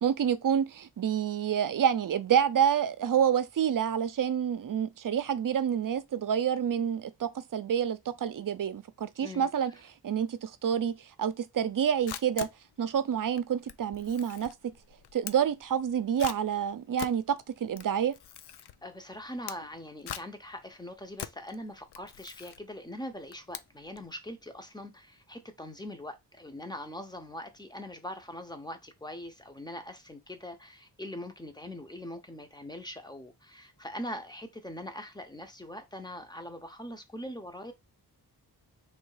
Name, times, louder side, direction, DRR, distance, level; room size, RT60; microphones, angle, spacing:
voice 1, 0.0-9.7 10.0-10.9 11.2-12.5 12.8-14.5 15.1-18.1, right 8 dB, 55° right, 0.6 m, -28 dB
voice 2, 9.2-9.8 18.6-37.7, left 1 dB, 10° left, 0.7 m, -42 dB
Camera, 11.7-24.1, left 10 dB, 85° left, 0.5 m, -44 dB
3.3 x 3.2 x 4.8 m
wide cardioid pair, 135°, 39 cm